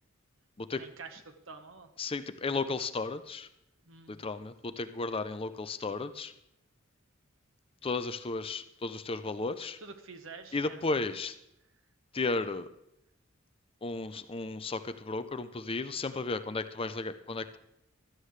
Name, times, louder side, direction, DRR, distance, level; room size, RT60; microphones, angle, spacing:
voice 1, 0.7-1.9 3.9-4.2 9.8-10.8, right 4 dB, 70° right, 7 dB, 1.3 m, -48 dB
voice 2, 2.0-3.5 4.1-6.3 7.8-9.8 10.5-11.4 12.1-12.7 13.8-17.6, left 3 dB, 25° left, 11 dB, 0.5 m, -34 dB
16.0 x 13.0 x 3.3 m, 0.82 s
head